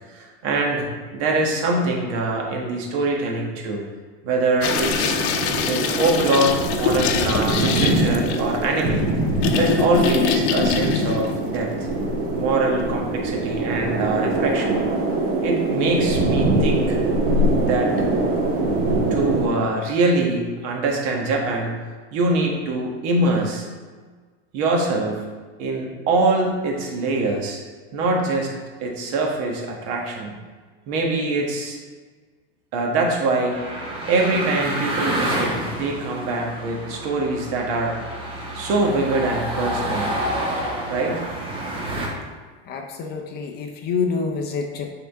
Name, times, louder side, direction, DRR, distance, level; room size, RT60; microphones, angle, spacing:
voice 1, 0.1-3.8 4.2-5.2 5.6-9.1 9.5-11.9 12.3-14.8 15.4-17.0 17.6-17.9 19.1-21.7 22.1-23.7 24.5-25.3 25.6-27.6 27.9-28.5 28.8-30.4 30.9-31.8 32.7-33.6 34.1-38.0 38.5-40.2 40.9-41.2, right 2 dB, 50° right, 0 dB, 1.3 m, -23 dB
sound 1, 4.6-12.2, left 6 dB, 75° left, 0.8 m, -25 dB
sound 2, 4.6-19.5, right 2 dB, 65° right, 1.8 m, -23 dB
sound 3, 33.5-42.1, right 1 dB, 15° right, 1.1 m, -28 dB
voice 2, 42.7-44.9, left 5 dB, 30° left, 3 dB, 0.5 m, -27 dB
8.9 x 3.7 x 3.5 m, 1.5 s
supercardioid pair, 150°, 33 cm